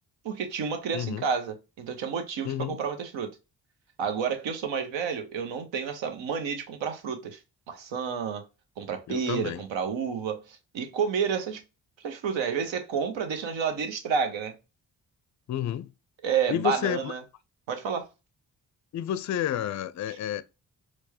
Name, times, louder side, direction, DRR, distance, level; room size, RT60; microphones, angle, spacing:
voice 1, 0.2-3.3 4.0-7.4 7.7-8.4 8.8-11.6 12.0-14.6 16.2-17.2 17.7-18.1 20.1-20.2, right 6 dB, 70° right, 0.9 m, -30 dB
voice 2, 0.9-1.2 2.4-2.8 9.1-9.6 15.5-15.9 16.5-17.1 18.9-20.4, left 10 dB, 40° left, 0.4 m, -30 dB
4.5 x 2.1 x 2.8 m
hypercardioid pair, 40°, 47 cm